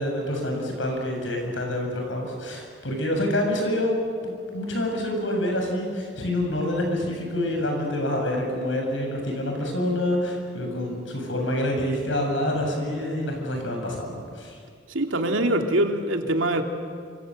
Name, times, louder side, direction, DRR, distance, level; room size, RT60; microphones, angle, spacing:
voice 1, 0.0-4.0 4.2-14.6, left 1 dB, 75° left, 2 dB, 7.3 m, -27 dB
voice 2, 14.9-16.6, right 1 dB, 90° right, 4 dB, 2.7 m, -23 dB
28.5 x 26.5 x 7.8 m, 2.2 s
head